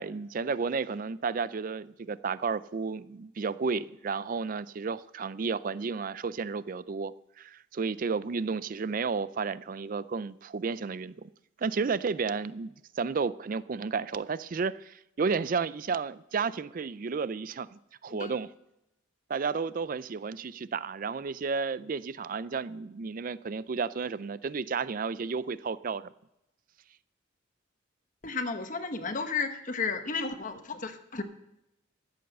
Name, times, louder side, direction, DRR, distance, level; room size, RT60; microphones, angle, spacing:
voice 1, 0.0-11.3 11.6-18.5 19.3-26.1, right 5 dB, 45° right, 0.4 m, -32 dB
voice 2, 28.2-31.2, left 4 dB, 40° left, 1.1 m, -33 dB
13.5 x 7.8 x 6.7 m
head